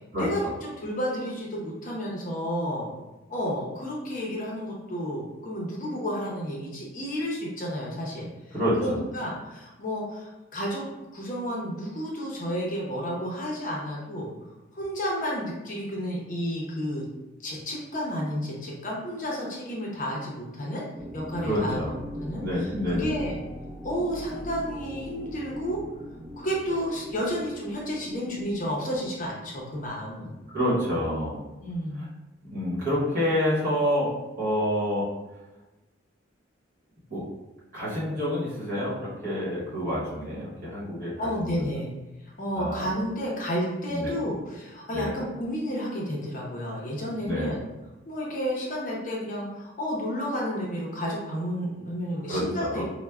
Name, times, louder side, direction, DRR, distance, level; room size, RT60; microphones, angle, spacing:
voice 1, 0.1-3.0 3.3-10.8 11.1-14.3 14.7-17.1 17.4-20.8 21.1-23.4 23.8-25.8 26.4-30.4 31.6-32.1 41.2-41.9 42.4-47.6 48.1-52.8, equal, 40° left, -3 dB, 0.6 m, -31 dB
voice 2, 8.5-9.0 21.4-22.0 22.3-23.2 30.5-31.4 32.4-35.1 37.1-37.3 37.7-41.1 41.4-41.6 42.6-42.9 43.9-44.1 44.9-45.1 47.3-47.6 52.3-52.8, equal, 40° right, -9 dB, 1.2 m, -28 dB
sound 1, 21.0-29.5, equal, 25° right, 0.7 m, -41 dB
4.3 x 2.1 x 2.3 m, 1.1 s
head